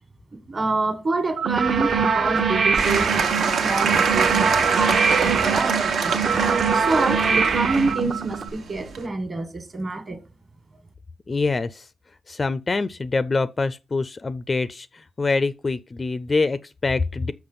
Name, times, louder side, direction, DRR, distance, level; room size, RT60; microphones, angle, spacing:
voice 1, 0.5-6.4 6.7-10.2, right 3 dB, 30° right, 1.5 m, -27 dB
sound 1, 1.4-8.5, right 6 dB, 50° right, 0.9 m, -23 dB
Applause / Crowd, 2.8-9.1, right 5 dB, 75° right, 1.4 m, -24 dB
voice 2, 11.3-11.9 12.3-17.3, left 3 dB, 25° left, 0.4 m, -25 dB
6.9 x 5.9 x 5.5 m
wide cardioid pair, 150°, 0 cm